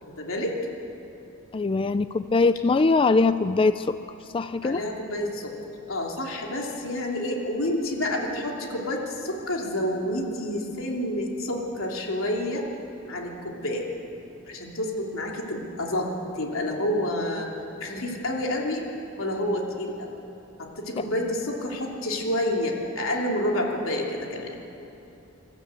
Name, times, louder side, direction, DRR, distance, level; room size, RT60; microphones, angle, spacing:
voice 1, 0.0-0.6 4.6-5.5 5.9-12.6 13.1-13.9 14.5-17.5 17.8-18.9 19.2-20.1 20.6-24.6, left 1 dB, 85° left, 0 dB, 3.0 m, -29 dB
voice 2, 1.5-3.9 4.3-4.8, left 3 dB, 25° left, 12 dB, 0.3 m, -22 dB
26.5 x 12.5 x 8.3 m, 2.9 s
head